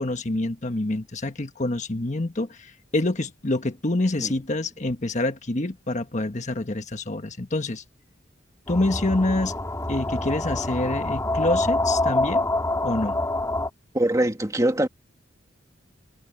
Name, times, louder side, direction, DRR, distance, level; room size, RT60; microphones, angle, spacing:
voice 1, 0.0-7.8 8.7-9.5 9.9-12.5 12.8-13.2, left 2 dB, 40° left, 1.4 m, -26 dB
sound 1, 8.7-13.7, left 2 dB, 15° left, 4.3 m, -26 dB
voice 2, 13.9-14.9, right 1 dB, 15° right, 2.3 m, -22 dB
head